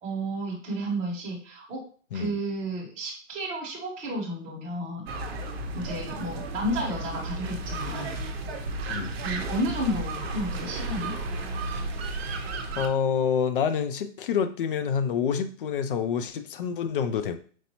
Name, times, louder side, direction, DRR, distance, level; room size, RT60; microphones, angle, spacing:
voice 1, 0.0-1.8 2.1-5.0 5.7-8.2 9.2-11.1, right 1 dB, 20° right, -4 dB, 1.2 m, -32 dB
sound 1, 5.1-12.9, right 2 dB, 55° right, 0.8 m, -33 dB
voice 2, 12.8-17.4, left 7 dB, 50° left, 9 dB, 0.5 m, -27 dB
4.5 x 2.6 x 2.8 m, 0.41 s
hypercardioid pair, 145°, 36 cm